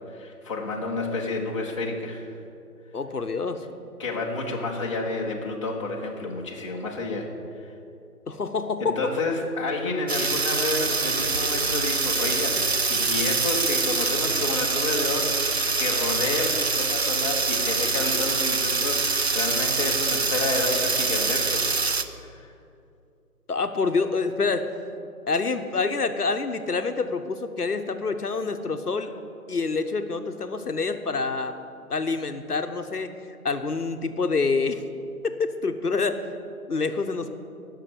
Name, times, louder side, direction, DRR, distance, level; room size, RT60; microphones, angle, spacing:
voice 1, 0.1-2.3 4.0-7.3 7.6-7.7 8.8-21.7 21.9-22.5, left 2 dB, 20° left, -2 dB, 1.1 m, -30 dB
voice 2, 2.9-3.6 8.3-9.1 23.5-24.7 25.3-29.1 29.5-31.5 31.9-33.1 33.4-34.8 35.2-36.3 36.7-37.3, left 4 dB, 75° left, 7 dB, 1.1 m, -27 dB
sound 1, 10.1-22.0, right 4 dB, 45° right, 0.6 m, -25 dB
18.0 x 6.7 x 7.2 m, 2.6 s
figure-of-eight pair, 150°, 46 cm